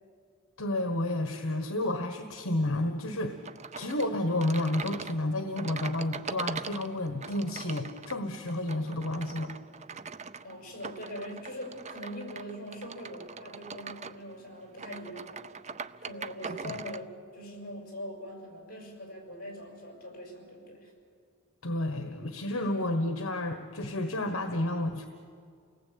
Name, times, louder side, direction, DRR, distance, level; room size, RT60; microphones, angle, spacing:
voice 1, 0.6-3.3 3.7-9.5 16.4-16.6 21.6-25.1, left 1 dB, 65° left, 6 dB, 1.4 m, -31 dB
sound 1, 3.4-17.0, right 5 dB, 30° right, 0.5 m, -42 dB
voice 2, 10.4-15.4 16.0-20.9, equal, 45° left, 1 dB, 6.4 m, -42 dB
28.5 x 19.0 x 8.6 m, 2.3 s
head